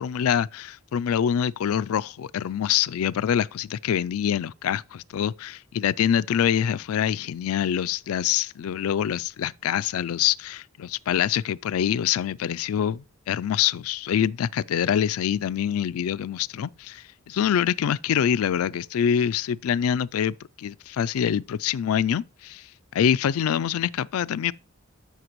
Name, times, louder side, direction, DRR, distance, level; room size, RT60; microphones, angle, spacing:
voice 1, 0.0-22.7 22.9-24.5, left 9 dB, 80° left, 0.3 m, -25 dB
13.0 x 5.8 x 3.0 m
head